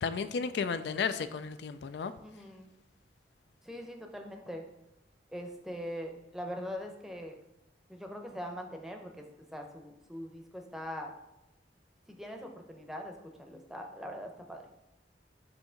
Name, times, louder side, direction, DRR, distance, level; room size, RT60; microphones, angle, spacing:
voice 1, 0.0-2.1, left 5 dB, 70° left, 12 dB, 0.3 m, -33 dB
voice 2, 2.2-2.7 3.6-4.6 5.3-7.4 7.9-11.1 12.1-14.6, equal, ahead, 3 dB, 0.6 m, -42 dB
6.8 x 2.8 x 5.6 m, 0.92 s
head